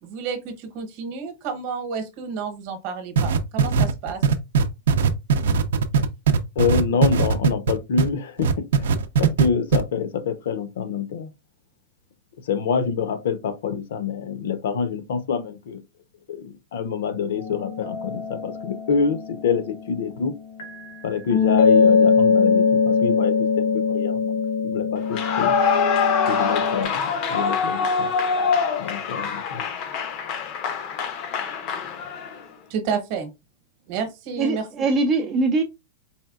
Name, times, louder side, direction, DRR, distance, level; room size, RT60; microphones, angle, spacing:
voice 1, 0.0-4.2 32.7-33.3 33.9-34.7, right 6 dB, 35° right, 1.0 m, -30 dB
sound 1, 3.2-8.1 8.4-9.5 9.7-9.8, right 6 dB, 80° right, 0.5 m, -19 dB
voice 2, 6.6-11.3 12.5-15.8 16.3-20.3 21.0-25.5 26.3-28.1 28.8-29.6 31.8-31.9, left 6 dB, 65° left, 0.7 m, -26 dB
sound 2, 17.3-20.1 20.6-26.8, left 5 dB, 85° left, 1.1 m, -22 dB
Clapping / Cheering / Applause, 25.0-32.5, left 6 dB, 30° left, 0.5 m, -25 dB
voice 3, 34.4-35.6, right 3 dB, 20° right, 0.3 m, -22 dB
4.3 x 3.3 x 2.3 m
supercardioid pair, 180°, 0 cm